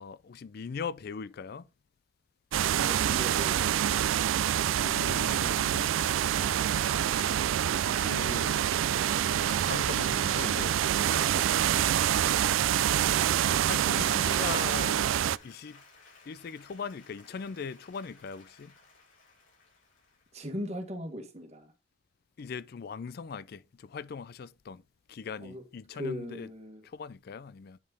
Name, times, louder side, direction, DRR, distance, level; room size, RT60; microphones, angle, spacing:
voice 1, 0.0-1.7 4.8-6.0 7.2-7.4 7.9-8.6 9.6-10.8 13.4-15.1 15.4-15.8 16.3-18.7 22.4-24.8 25.1-26.5 26.8-27.8, left 5 dB, 50° left, 0.4 m, -40 dB
sound 1, 2.5-15.4, right 10 dB, 85° right, 0.3 m, -26 dB
voice 2, 2.8-4.1 10.9-12.2 20.3-21.7 25.4-25.6 25.9-26.9, equal, 35° right, 1.8 m, -40 dB
Applause, 7.5-20.7, left 2 dB, 80° left, 5.5 m, -53 dB
9.6 x 5.2 x 4.1 m
head